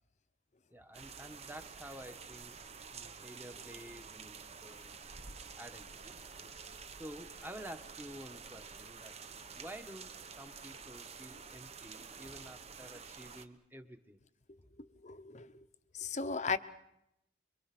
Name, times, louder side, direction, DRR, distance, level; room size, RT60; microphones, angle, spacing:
voice 1, 0.7-2.5 2.9-4.9 5.6-6.2 7.0-9.2 9.5-14.2, right 1 dB, 10° right, 1.4 m, -50 dB
sound 1, 0.9-13.4, right 5 dB, 35° right, 1.0 m, -49 dB
voice 2, 15.0-15.5 15.9-16.6, left 5 dB, 40° left, 0.8 m, -35 dB
26.0 x 23.5 x 6.1 m
head